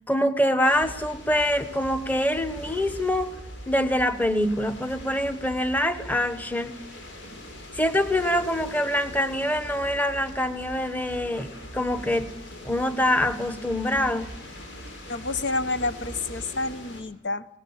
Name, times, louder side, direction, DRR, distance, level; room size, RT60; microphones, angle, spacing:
voice 1, 0.1-3.3 3.7-6.8 7.7-12.3 12.6-14.3, left 1 dB, 10° left, 10 dB, 1.2 m, -25 dB
sound 1, 0.6-17.0, equal, 80° left, 6.0 m, -41 dB
voice 2, 15.1-17.5, left 3 dB, 65° left, 12 dB, 0.8 m, -29 dB
24.5 x 19.0 x 7.4 m, 0.84 s
head